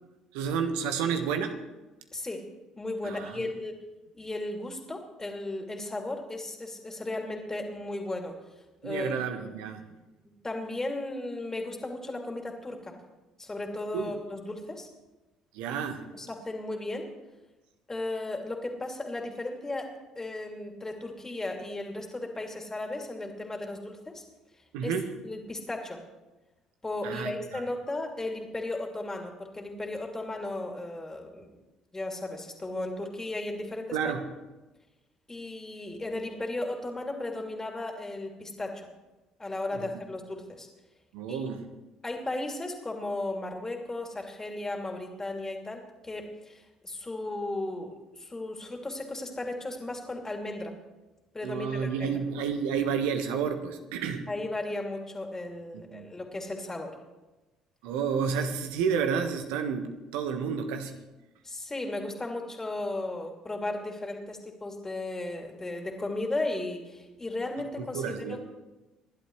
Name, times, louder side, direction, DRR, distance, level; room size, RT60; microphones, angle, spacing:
voice 1, 0.3-1.6 3.0-3.5 8.8-9.8 13.9-14.1 15.5-16.0 24.7-25.1 27.0-27.6 33.9-34.2 39.7-39.9 41.1-41.6 51.4-54.3 55.7-56.1 57.8-61.0 67.8-68.4, right 6 dB, 75° right, 7 dB, 1.4 m, -30 dB
voice 2, 2.1-2.4 2.8-3.8 4.1-8.4 8.8-9.6 10.2-12.9 13.4-14.9 16.1-17.1 17.9-24.2 24.8-24.9 25.2-26.0 26.8-31.6 31.9-34.0 35.3-38.9 39.4-40.7 41.3-41.4 42.0-50.8 51.3-52.1 54.3-57.0 61.4-68.4, left 2 dB, 20° left, 2 dB, 2.9 m, -35 dB
28.0 x 11.5 x 3.3 m, 1.1 s
hypercardioid pair, 55°, 2 cm